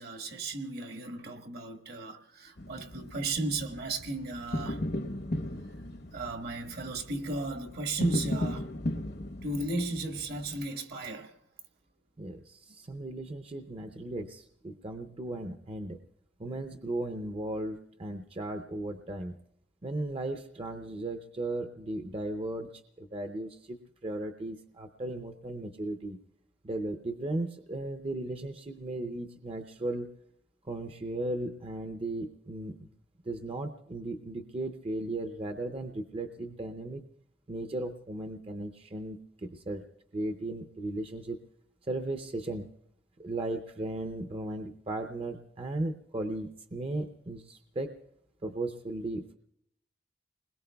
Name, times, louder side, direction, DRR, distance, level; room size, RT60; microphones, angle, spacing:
voice 1, 0.0-4.8 5.1-5.2 6.1-8.7 9.4-11.3, right 2 dB, 60° right, 1.2 m, -35 dB
sound 1, 2.6-10.6, left 1 dB, 60° left, 0.9 m, -36 dB
voice 2, 12.2-16.0 16.4-19.3 19.8-26.2 26.6-30.1 30.7-32.9 33.3-37.0 37.5-39.8 40.1-41.4 41.9-42.7 43.2-48.0 48.4-49.3, right 2 dB, 30° right, 0.6 m, -36 dB
29.5 x 21.0 x 2.3 m
head